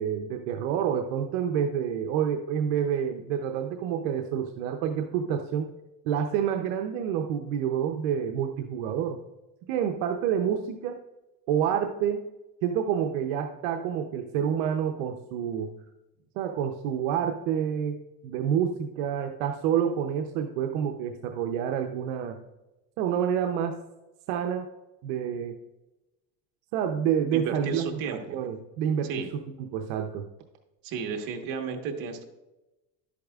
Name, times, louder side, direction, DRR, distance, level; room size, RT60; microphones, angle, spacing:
voice 1, 0.0-5.7 6.1-9.2 9.7-11.0 11.5-12.2 12.6-15.7 16.4-22.4 23.0-23.8 24.3-24.7 25.0-25.6 26.7-28.0 28.3-30.3, right 8 dB, 85° right, 4 dB, 0.8 m, -28 dB
voice 2, 27.3-28.2 29.1-29.3 30.8-32.2, right 6 dB, 60° right, 4 dB, 1.5 m, -33 dB
11.5 x 8.5 x 2.4 m, 0.99 s
cardioid pair, 130°, 39 cm